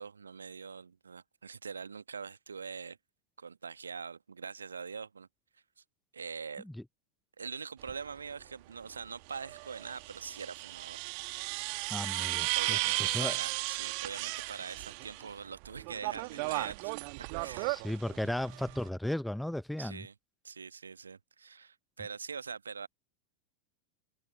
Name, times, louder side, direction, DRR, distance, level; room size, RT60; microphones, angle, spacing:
voice 1, 0.0-3.0 3.4-5.3 6.1-6.6 7.4-11.0 12.5-16.9 17.4-17.8 19.8-20.1 20.4-22.9, right 5 dB, 75° right, 1.3 m, -43 dB
sound 1, 7.8-7.9 9.3-15.3 15.6-18.9, right 38 dB, 45° right, 1.7 m, -35 dB
voice 2, 11.9-13.4 17.6-20.1, left 1 dB, ahead, 0.9 m, -35 dB
figure-of-eight pair, 90°, 0 cm